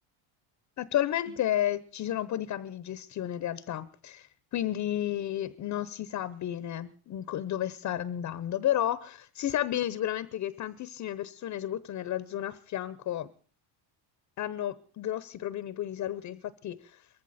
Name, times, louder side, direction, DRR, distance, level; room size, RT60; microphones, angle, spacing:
voice 1, 0.8-13.3 14.4-17.0, left 12 dB, 35° left, 0.8 m, -32 dB
21.5 x 15.5 x 4.2 m
cardioid pair, 140°, 47 cm